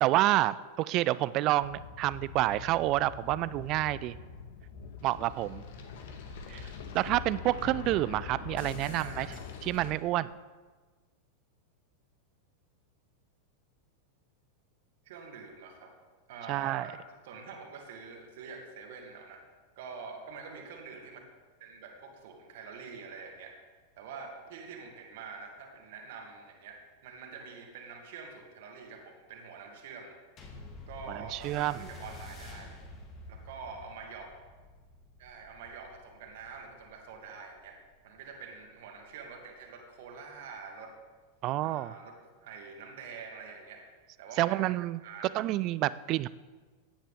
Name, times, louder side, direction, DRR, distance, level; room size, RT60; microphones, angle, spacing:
voice 1, 0.0-4.2 5.0-5.6 6.5-6.6 6.9-9.3 9.6-10.3 16.5-16.9 31.1-31.8 41.4-41.9 44.4-45.0 45.3-46.3, right 16 dB, 40° right, 18 dB, 0.4 m, -28 dB
sound 1, 1.5-9.9, left 6 dB, 55° left, 1.5 m, -43 dB
voice 2, 8.8-9.4 15.0-15.9 16.3-19.4 19.8-21.2 21.6-23.5 24.0-30.1 30.9-32.8 33.3-34.3 35.2-37.8 38.0-40.9 41.6-43.8 44.2-44.6 45.0-45.2, right 5 dB, 55° right, 2 dB, 2.2 m, -46 dB
sound 2, 30.4-39.1 39.9-40.0, left 2 dB, 30° left, 2.6 m, -50 dB
16.5 x 10.0 x 3.6 m, 1.4 s
figure-of-eight pair, 90°, 0 cm